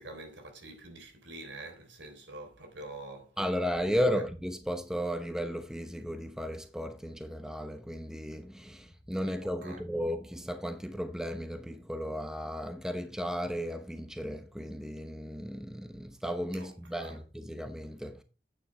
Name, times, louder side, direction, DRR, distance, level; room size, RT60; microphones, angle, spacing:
voice 1, 0.0-3.3 3.8-4.2 9.4-9.8 16.5-17.2, right 2 dB, 85° right, 3.6 m, -46 dB
voice 2, 3.4-18.2, equal, 5° right, 0.9 m, -34 dB
9.6 x 9.2 x 3.3 m
head